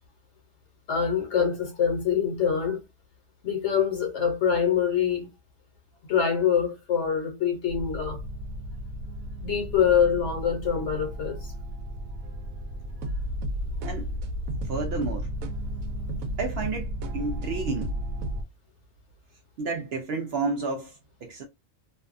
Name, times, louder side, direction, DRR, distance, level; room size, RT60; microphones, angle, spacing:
voice 1, 0.9-2.8 3.4-5.3 6.1-8.2 9.4-11.5, left 7 dB, 60° left, 1.0 m, -25 dB
sound 1, 7.7-18.4, equal, 85° right, 1.0 m, -33 dB
voice 2, 13.8-14.1 14.7-15.3 16.4-17.9 19.6-21.4, right 3 dB, 65° right, 0.6 m, -31 dB
2.6 x 2.2 x 2.5 m
omnidirectional pair, 1.4 m